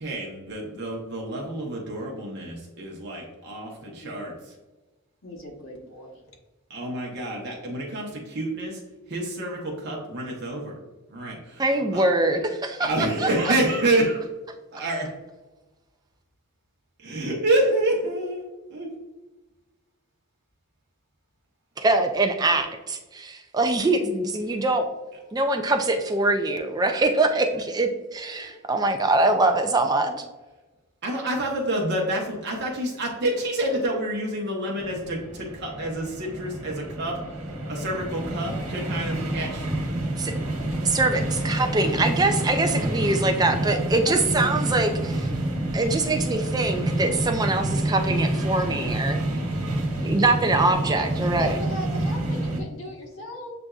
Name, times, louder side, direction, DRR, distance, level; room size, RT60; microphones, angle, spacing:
voice 1, 0.0-4.3 6.7-8.8 9.1-10.7 11.1-11.6 11.9-12.0 12.8-14.2 14.7-15.1 17.0-18.9 31.0-37.2 37.7-39.7, right 1 dB, 50° right, -2 dB, 0.8 m, -28 dB
voice 2, 5.2-6.2 27.5-27.7 28.2-28.7 43.7-43.8 44.0-44.1 50.9-51.0 51.4-53.5, equal, 65° left, -1 dB, 1.2 m, -39 dB
voice 3, 11.6-13.5 21.8-24.9 25.3-30.2 40.2-40.3 40.8-45.3 45.7-49.2 50.0-51.6, right 2 dB, 20° right, 5 dB, 0.3 m, -23 dB
sound 1, 34.8-52.6, right 1 dB, 85° right, 1.1 m, -28 dB
7.5 x 2.6 x 2.3 m, 1.1 s
head